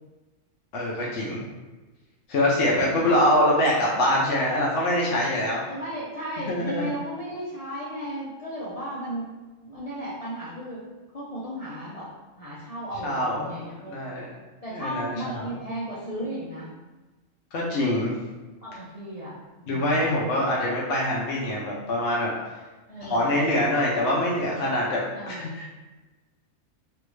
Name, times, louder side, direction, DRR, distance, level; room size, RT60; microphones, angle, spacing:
voice 1, 0.7-1.4 2.3-5.6 6.5-6.8 13.0-14.2 14.7-15.5 17.5-18.1 19.7-22.3 23.0-25.7, left 1 dB, 65° left, -4 dB, 0.8 m, -24 dB
voice 2, 2.6-3.2 5.7-9.3 9.6-10.8 11.1-12.1 12.4-14.0 14.6-16.7 18.6-20.2 22.9-23.4 25.1-25.6, equal, 45° left, -9 dB, 0.5 m, -35 dB
3.3 x 2.5 x 3.1 m, 1.2 s
omnidirectional pair, 1.4 m